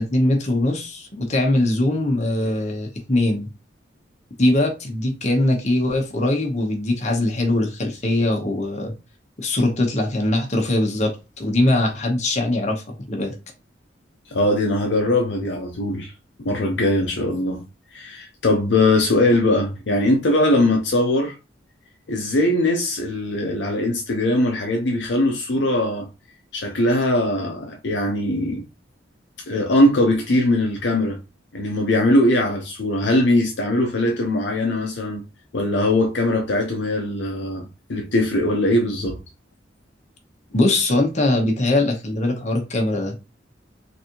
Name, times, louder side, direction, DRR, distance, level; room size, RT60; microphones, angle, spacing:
voice 1, 0.0-3.5 4.4-8.9 9.4-13.4 40.5-43.3, left 1 dB, 40° left, 1.0 m, -21 dB
voice 2, 14.3-16.1 16.4-17.6 17.9-21.4 22.1-26.1 26.5-28.6 29.5-31.2 31.5-35.2 35.5-39.2, left 1 dB, 65° left, 0.6 m, -21 dB
3.9 x 2.6 x 2.9 m
head